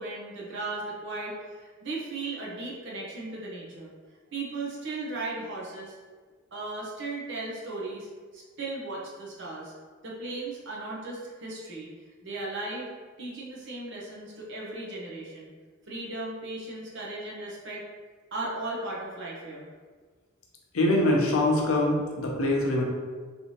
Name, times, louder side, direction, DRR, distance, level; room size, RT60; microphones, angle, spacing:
voice 1, 0.0-3.9 4.3-5.9 6.5-8.1 8.3-9.7 10.0-11.9 12.2-12.9 13.2-15.5 15.9-17.8 18.3-19.6, right 2 dB, 60° right, -4 dB, 0.9 m, -36 dB
voice 2, 20.7-22.8, left 1 dB, 85° left, -1 dB, 0.7 m, -24 dB
3.3 x 2.7 x 3.1 m, 1.5 s
head